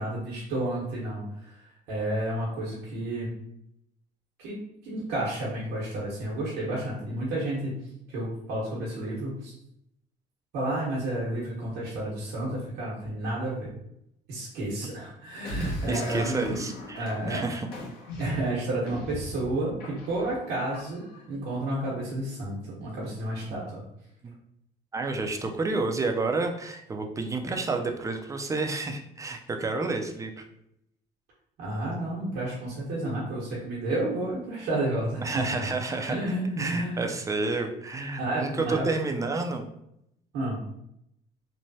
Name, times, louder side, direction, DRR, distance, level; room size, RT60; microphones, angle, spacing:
voice 1, 0.0-3.3 4.4-7.8 8.1-9.5 10.5-13.7 14.3-16.4 16.9-17.4 18.2-23.8 31.6-35.6 36.1-37.1 38.2-38.9 40.3-40.6, right 1 dB, 80° right, -7 dB, 1.0 m, -31 dB
sound 1, 15.4-21.3, left 1 dB, 65° left, 1.0 m, -39 dB
voice 2, 15.9-17.7 23.4-23.6 24.2-24.3 24.9-30.4 35.2-36.2 36.6-39.7, right 3 dB, 20° right, 4 dB, 0.4 m, -30 dB
3.1 x 2.1 x 2.7 m, 0.78 s
cardioid pair, 110°, 17 cm